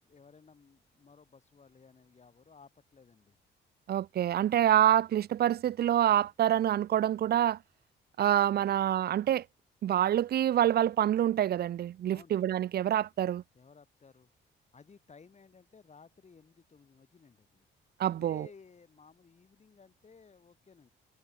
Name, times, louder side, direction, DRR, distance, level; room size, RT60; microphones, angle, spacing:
voice 1, 0.0-3.4 8.6-8.8 12.1-12.3 13.5-14.3 14.7-17.7 18.1-20.9, left 5 dB, 35° left, 5.4 m, -57 dB
voice 2, 3.9-7.6 8.2-9.4 9.8-13.4 18.0-18.5, right 11 dB, 55° right, 0.5 m, -26 dB
cardioid pair, 90°, 20 cm